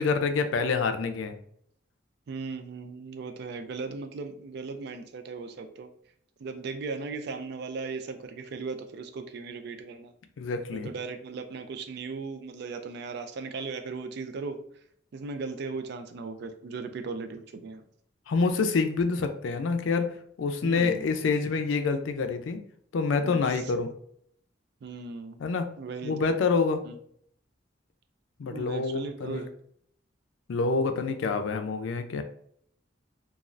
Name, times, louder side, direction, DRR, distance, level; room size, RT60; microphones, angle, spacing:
voice 1, 0.0-1.4 10.4-10.9 18.3-22.6 22.9-23.9 25.4-25.7 26.0-26.8 28.4-29.5 30.5-32.2, left 4 dB, 85° left, 7 dB, 0.4 m, -27 dB
voice 2, 2.3-5.9 6.4-10.1 10.7-14.6 15.1-17.8 20.6-21.1 23.2-23.6 24.8-25.4 25.8-26.1 26.8-27.0 28.5-29.5, right 4 dB, 60° right, 8 dB, 0.4 m, -37 dB
2.5 x 2.3 x 3.1 m, 0.66 s
head